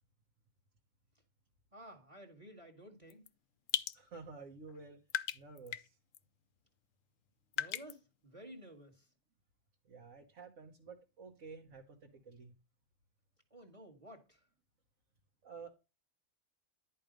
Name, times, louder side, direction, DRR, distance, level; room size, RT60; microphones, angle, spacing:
voice 1, 1.7-3.3 7.5-9.1 13.5-14.5, right 1 dB, 25° right, 1.5 m, -53 dB
sound 1, 3.1-3.3 3.7-4.0 4.7-4.8 5.1-5.9 6.1-6.2 7.5-7.9, left 11 dB, 75° left, 1.0 m, -36 dB
voice 2, 3.9-5.0 5.3-6.0 9.9-12.5 15.4-15.7, right 4 dB, 70° right, 1.5 m, -51 dB
11.0 x 4.7 x 5.1 m
omnidirectional pair, 1.4 m